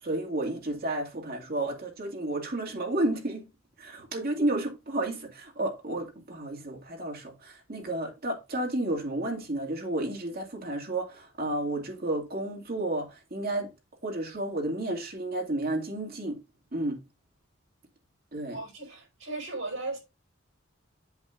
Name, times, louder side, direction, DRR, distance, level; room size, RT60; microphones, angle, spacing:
voice 1, 0.0-3.5 3.8-13.7 14.0-16.4 16.7-17.0 18.3-18.6, right 1 dB, 50° right, 2.2 m, -31 dB
voice 2, 18.5-20.0, right 2 dB, 75° right, 4.8 m, -36 dB
8.0 x 7.3 x 2.5 m
head